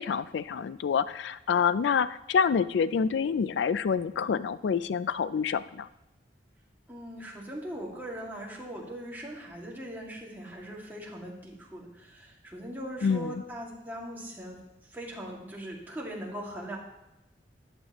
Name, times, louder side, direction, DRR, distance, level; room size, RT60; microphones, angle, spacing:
voice 1, 0.0-5.9 13.0-13.4, left 6 dB, 80° left, 16 dB, 0.4 m, -27 dB
voice 2, 6.9-14.6 14.9-16.8, right 1 dB, 10° right, -3 dB, 2.2 m, -40 dB
14.0 x 10.0 x 3.0 m, 0.91 s
head